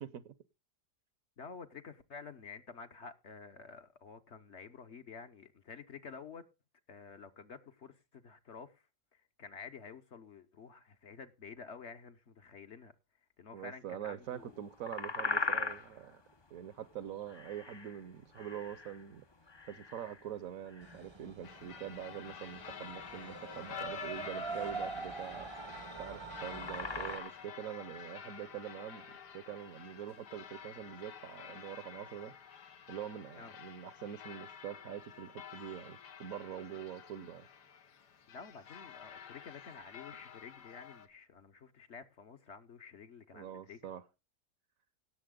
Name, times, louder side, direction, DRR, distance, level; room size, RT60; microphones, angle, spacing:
voice 1, 0.0-0.3 13.5-16.2 16.5-19.2 19.7-25.5 26.0-29.1 29.3-32.3 32.9-37.5 43.3-44.0, right 10 dB, 60° right, 1.1 m, -44 dB
voice 2, 1.4-6.4 6.9-8.8 9.1-12.9 13.4-14.6 24.5-24.7 33.4-33.5 38.3-43.9, left 5 dB, 50° left, 1.1 m, -50 dB
sound 1, 14.5-27.4, left 4 dB, 30° left, 0.5 m, -41 dB
sound 2, 20.8-27.2, right 4 dB, 25° right, 0.7 m, -44 dB
sound 3, 21.4-41.1, left 8 dB, 90° left, 1.8 m, -50 dB
17.5 x 7.2 x 3.7 m
omnidirectional pair, 1.7 m